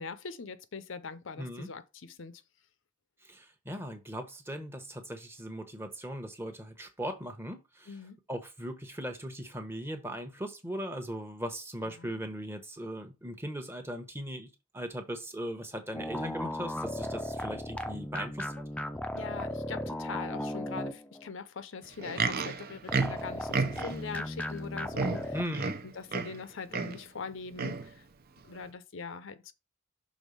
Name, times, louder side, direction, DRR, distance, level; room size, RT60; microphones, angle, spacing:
voice 1, 0.0-2.4 7.9-8.2 11.8-12.2 19.1-25.4 25.8-28.1 28.5-29.5, left 5 dB, 60° left, 0.6 m, -42 dB
voice 2, 1.4-1.7 3.2-8.0 8.3-14.5 14.7-18.5 25.3-25.7, equal, 10° right, 1.0 m, -39 dB
sound 1, 15.9-21.3 22.9-25.4, left 1 dB, 5° left, 0.5 m, -36 dB
Livestock farm animals working animals, 21.8-24.1 24.6-24.7 24.9-26.4 26.7-27.0 27.6-27.9 28.6-28.7, right 4 dB, 45° right, 0.6 m, -32 dB
6.3 x 3.9 x 5.3 m
head